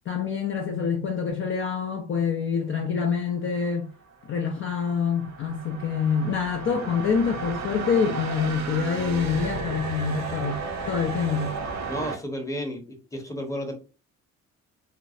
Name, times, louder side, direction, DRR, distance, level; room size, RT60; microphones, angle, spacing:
voice 1, 0.1-3.9 4.3-11.6, left 6 dB, 45° left, 0.4 m, -26 dB
sound 1, 4.2-12.2, right 4 dB, 65° right, 0.6 m, -34 dB
voice 2, 11.9-12.8 13.1-13.7, equal, 10° left, 0.7 m, -32 dB
2.5 x 2.0 x 2.4 m
cardioid pair, 90°, 30 cm